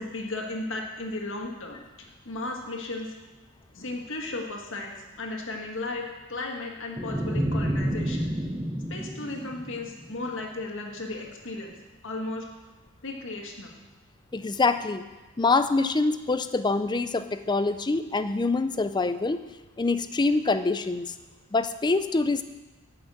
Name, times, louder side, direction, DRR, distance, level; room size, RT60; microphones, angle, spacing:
voice 1, 0.0-3.1 3.7-8.3 8.9-11.7 12.0-12.5 13.0-13.7, left 2 dB, 60° left, 1 dB, 1.8 m, -35 dB
sound 1, 7.0-10.2, equal, 10° right, 0.7 m, -30 dB
voice 2, 14.3-15.0 15.4-19.4 19.8-21.1 21.5-22.4, left 3 dB, 20° left, 11 dB, 0.4 m, -25 dB
12.0 x 5.9 x 7.7 m, 1.2 s
head